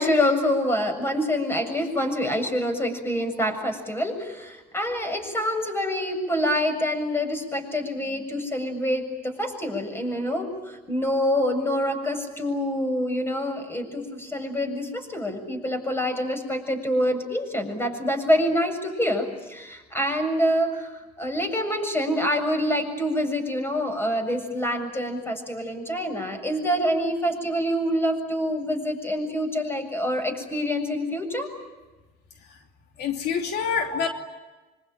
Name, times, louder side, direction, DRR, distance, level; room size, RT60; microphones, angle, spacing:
voice 1, 0.0-31.5 33.9-34.0, equal, 15° left, 6 dB, 7.2 m, -26 dB
voice 2, 33.0-34.1, left 7 dB, 75° left, 4 dB, 3.0 m, -26 dB
26.0 x 25.5 x 9.0 m, 1.2 s
cardioid pair, 110°, 17 cm